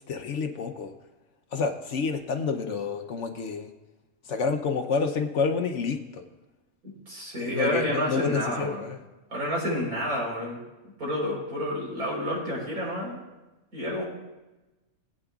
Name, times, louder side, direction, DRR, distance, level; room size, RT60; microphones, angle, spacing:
voice 1, 0.1-0.9 1.5-3.7 4.3-6.2 7.4-9.0, left 5 dB, 60° left, 6 dB, 0.9 m, -29 dB
voice 2, 7.1-8.8 9.3-10.6 11.0-13.2 13.7-14.0, equal, 80° right, -4 dB, 4.5 m, -29 dB
20.0 x 8.7 x 2.4 m, 1.1 s
omnidirectional pair, 1.5 m